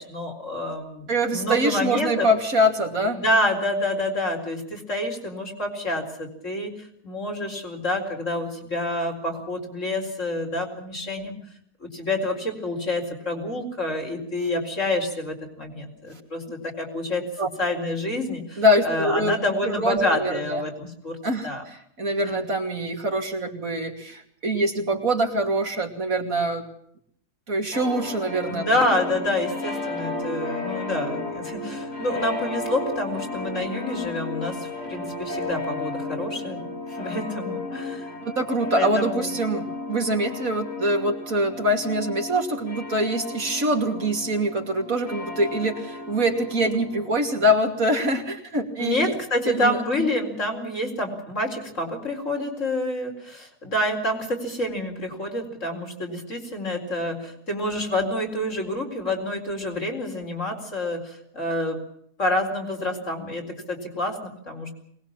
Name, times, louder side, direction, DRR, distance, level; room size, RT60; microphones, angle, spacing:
voice 1, 0.0-2.3 3.1-11.4 11.8-17.3 17.6-21.2 21.4-21.6 22.2-22.4 28.5-36.6 37.0-38.1 38.8-39.3 48.8-61.8 62.2-64.7, left 1 dB, 50° left, 2 dB, 4.6 m, -28 dB
voice 2, 1.1-3.2 17.4-17.5 18.6-19.3 19.6-20.6 21.2-26.6 27.5-28.8 38.2-49.1 49.5-50.1, equal, 60° right, 3 dB, 3.1 m, -24 dB
sound 1, 27.7-47.4, left 2 dB, 80° left, 7.3 m, -33 dB
23.0 x 20.0 x 7.3 m, 0.65 s
omnidirectional pair, 1.6 m